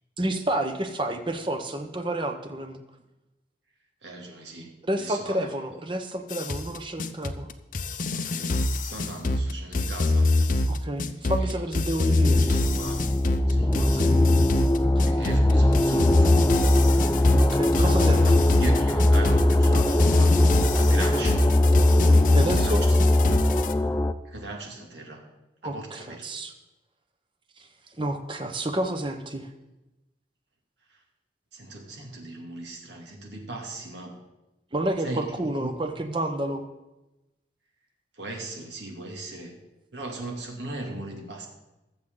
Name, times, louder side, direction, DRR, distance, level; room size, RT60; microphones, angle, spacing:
voice 1, 0.2-2.8 4.8-7.5 10.7-12.4 13.8-14.2 14.8-15.2 17.4-18.4 21.0-21.3 22.3-22.8 25.6-26.5 28.0-29.5 34.7-36.6, right 1 dB, 25° right, 6 dB, 1.1 m, -30 dB
voice 2, 4.0-5.4 8.1-8.5 8.8-10.3 11.4-11.6 12.4-13.2 13.5-14.2 15.0-17.3 17.8-18.3 18.6-20.3 20.6-21.5 22.6-22.9 23.3-23.4 24.3-25.2 25.6-26.2 31.5-34.1 35.0-35.3 35.6-35.7 38.2-39.5 39.9-41.5, right 2 dB, 75° right, 0 dB, 2.7 m, -38 dB
sound 1, 6.3-23.7, left 2 dB, 45° left, 0.7 m, -24 dB
sound 2, 12.2-24.1, left 1 dB, 15° left, 0.5 m, -21 dB
22.0 x 7.7 x 3.9 m, 1.0 s
head